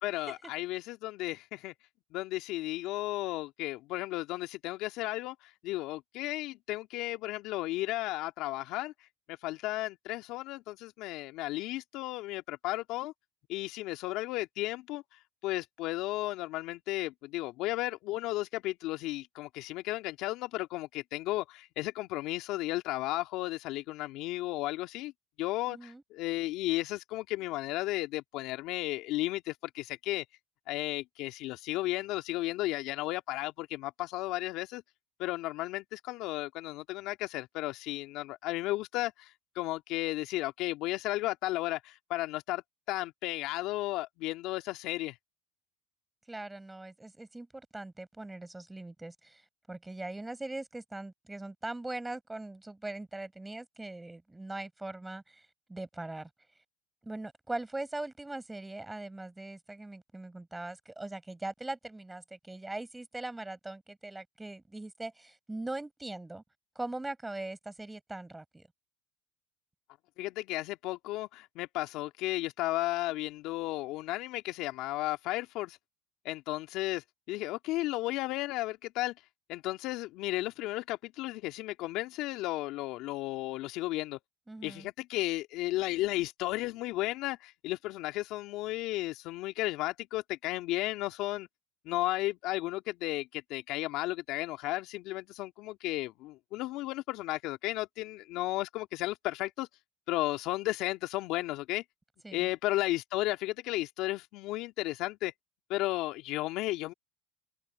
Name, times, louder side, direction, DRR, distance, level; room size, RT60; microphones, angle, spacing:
voice 1, 0.0-1.7 2.1-8.9 9.3-13.1 13.5-15.0 15.4-25.1 25.4-30.3 30.7-34.8 35.2-45.2 70.2-75.8 76.2-79.1 79.5-84.2 84.6-91.5 91.9-99.7 100.1-101.8 102.3-105.3 105.7-106.9, left 18 dB, 65° left, 2.3 m, -34 dB
voice 2, 25.7-26.0 46.3-55.4 55.7-56.3 57.0-66.4 66.7-68.7 84.5-84.9 102.2-102.5, right 2 dB, 10° right, 6.0 m, -41 dB
hypercardioid pair, 85°, 0 cm